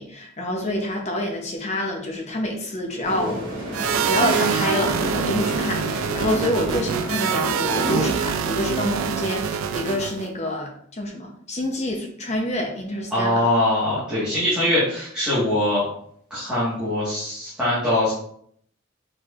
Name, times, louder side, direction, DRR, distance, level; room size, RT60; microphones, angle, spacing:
voice 1, 0.0-3.4 4.0-13.4, left 1 dB, 35° left, 1 dB, 0.8 m, -27 dB
sound 1, 3.0-8.1, equal, 45° right, 1.5 m, -30 dB
sound 2, 3.7-10.3, right 7 dB, 85° right, 0.3 m, -25 dB
voice 2, 13.1-15.9 16.3-18.1, left 1 dB, 5° right, -12 dB, 1.5 m, -22 dB
4.4 x 4.4 x 2.5 m, 0.64 s
head